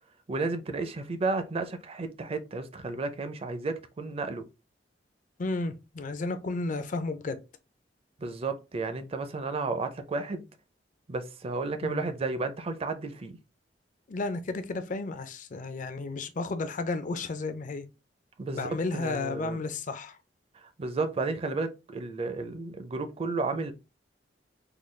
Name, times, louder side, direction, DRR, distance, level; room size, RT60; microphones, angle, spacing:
voice 1, 0.3-4.5 8.2-10.5 11.1-13.4 18.4-19.6 20.5-23.7, right 3 dB, 35° right, 0.4 m, -32 dB
voice 2, 5.4-7.4 11.8-12.0 14.1-17.9 18.5-20.2, left 3 dB, 45° left, 0.4 m, -33 dB
3.8 x 2.3 x 3.1 m
head